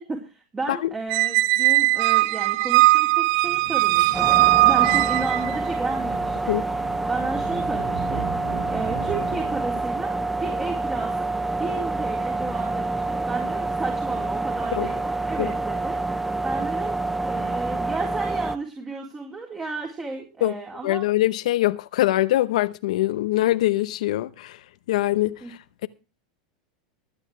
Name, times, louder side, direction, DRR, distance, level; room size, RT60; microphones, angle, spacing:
voice 1, 0.1-11.3 11.6-16.1 16.4-16.9 17.2-21.0 25.4-25.5, right 3 dB, 20° right, 4.1 m, -33 dB
Squeak, 1.1-5.6, right 18 dB, 60° right, 0.5 m, -19 dB
sound 1, 3.3-9.7, right 5 dB, 85° right, 5.8 m, -38 dB
sound 2, 4.1-18.6, right 2 dB, 5° right, 0.6 m, -27 dB
voice 2, 20.8-24.6 24.9-25.9, left 15 dB, 75° left, 0.8 m, -23 dB
23.0 x 9.0 x 3.3 m
hypercardioid pair, 110°, 4 cm